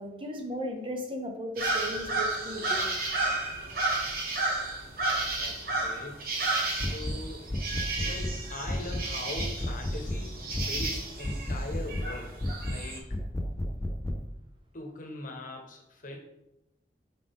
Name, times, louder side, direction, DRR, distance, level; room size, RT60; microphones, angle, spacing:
voice 1, 0.0-3.0, equal, 30° right, 3 dB, 0.7 m, -36 dB
sound 1, 1.6-13.0, right 2 dB, 55° right, 1.2 m, -32 dB
voice 2, 5.4-6.3 6.7-7.5 8.0-12.4 12.6-13.1 14.7-16.2, left 2 dB, 50° left, 1 dB, 1.1 m, -41 dB
sound 2, 6.8-7.2 7.5-8.4 8.7-9.1 9.4-10.2 10.5-10.9 11.2-12.1 12.4-12.8 13.1-14.2, left 1 dB, 15° left, 0.4 m, -32 dB
5.7 x 4.9 x 3.5 m, 0.87 s
head